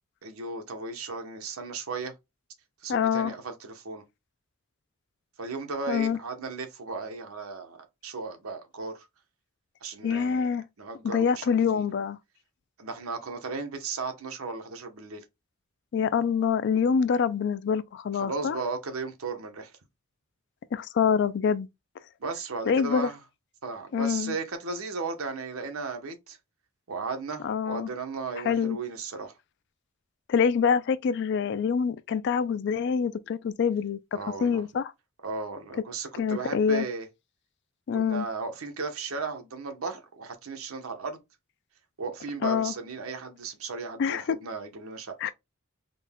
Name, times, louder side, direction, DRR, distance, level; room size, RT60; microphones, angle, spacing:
voice 1, 0.2-2.1 2.8-4.0 5.4-9.1 9.8-11.8 12.8-15.2 18.1-19.7 22.2-23.2 23.6-26.4 26.9-29.4 34.1-34.6 35.2-37.1 37.9-41.2 42.0-45.3, right 4 dB, 90° right, 0.8 m, -35 dB
voice 2, 2.9-3.3 5.9-6.2 10.0-10.6 11.0-12.2 15.9-18.6 20.7-21.7 22.7-23.1 23.9-24.4 27.4-27.9 28.4-28.8 30.3-34.0 34.4-34.9 36.2-36.9 37.9-38.3 42.4-42.7 44.0-44.4 45.2-45.3, left 6 dB, 55° left, 0.3 m, -25 dB
3.8 x 2.1 x 3.5 m
head